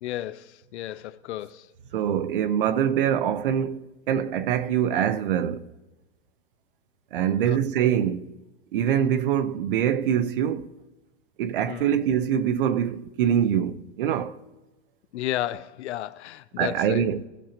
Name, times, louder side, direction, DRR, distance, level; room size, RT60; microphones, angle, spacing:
voice 1, 0.0-1.7 7.4-7.6 11.7-12.0 15.1-17.1, left 13 dB, 70° left, 0.6 m, -33 dB
voice 2, 1.9-5.7 7.1-8.3 8.7-10.7 11.4-14.4 16.6-17.2, right 9 dB, 50° right, 0.6 m, -24 dB
16.5 x 6.1 x 2.9 m
supercardioid pair, 170°, 35 cm